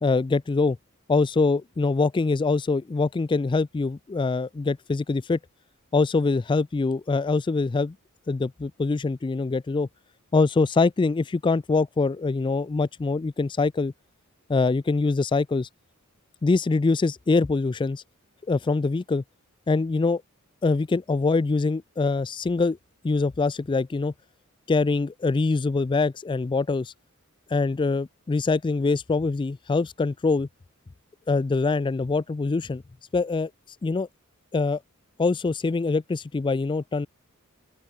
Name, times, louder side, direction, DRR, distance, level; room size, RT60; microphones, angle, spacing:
voice 1, 0.0-0.8 1.1-5.4 5.9-7.9 8.3-9.9 10.3-13.9 14.5-15.7 16.4-18.0 18.5-19.2 19.7-20.2 20.6-22.8 23.0-24.1 24.7-26.9 27.5-30.5 31.3-32.8 33.1-33.5 33.8-34.1 34.5-34.8 35.2-37.1, left 3 dB, 20° left, 0.3 m, -24 dB
open air
head